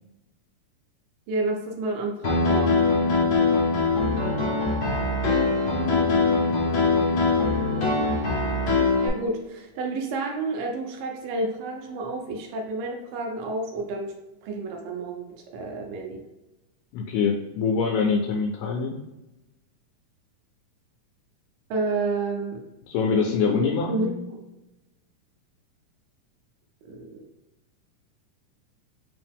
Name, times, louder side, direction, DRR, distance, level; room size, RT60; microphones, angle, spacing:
voice 1, 1.3-2.9 9.0-14.1 14.4-15.3 15.5-16.2 21.7-22.6 23.6-24.1 26.9-27.2, right 3 dB, 80° right, 2 dB, 2.2 m, -30 dB
Piano, 2.2-9.1, left 3 dB, 65° left, 1.2 m, -22 dB
voice 2, 16.9-19.0 22.9-24.1, left 5 dB, 80° left, 1 dB, 2.1 m, -24 dB
5.2 x 2.8 x 3.5 m, 0.99 s
omnidirectional pair, 4.0 m